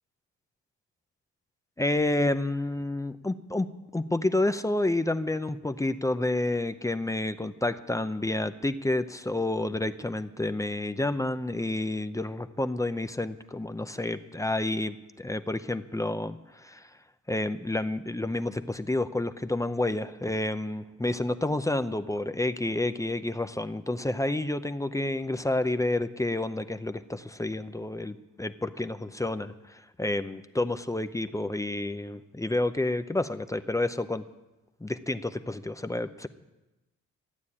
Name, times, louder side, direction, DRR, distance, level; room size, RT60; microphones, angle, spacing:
voice 1, 1.8-16.8 17.3-34.2 34.8-36.3, left 2 dB, 10° left, 10 dB, 0.7 m, -29 dB
14.5 x 9.4 x 8.6 m, 1.0 s
cardioid pair, 90°, 30 cm